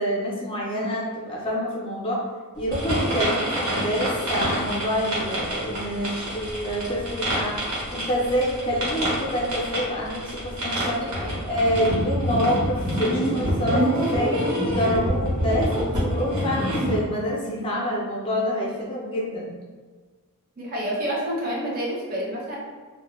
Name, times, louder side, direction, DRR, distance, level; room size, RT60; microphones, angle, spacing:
voice 1, 0.0-2.2 2.6-7.6 7.9-11.0 11.5-19.5, equal, 25° left, -4 dB, 0.4 m, -27 dB
sound 1, 2.7-17.0, equal, 75° right, 0.9 m, -27 dB
voice 2, 10.9-11.4 14.8-15.1 17.4-17.7 20.6-22.6, equal, 40° right, -5 dB, 0.6 m, -30 dB
2.1 x 2.1 x 2.9 m, 1.5 s
head